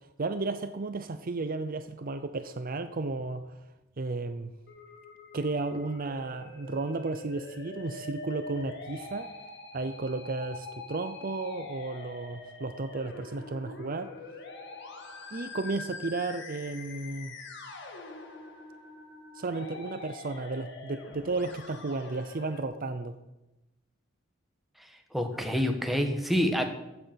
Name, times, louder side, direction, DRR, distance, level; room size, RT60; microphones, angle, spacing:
voice 1, 0.2-3.6 4.0-4.5 5.3-9.3 9.7-14.1 15.3-17.3 19.3-23.1, right 3 dB, 45° right, 10 dB, 0.6 m, -33 dB
Musical instrument, 4.7-22.6, left 3 dB, 60° left, 2.0 m, -45 dB
voice 2, 25.1-26.7, equal, ahead, 4 dB, 1.3 m, -27 dB
15.0 x 7.8 x 5.9 m, 0.99 s
head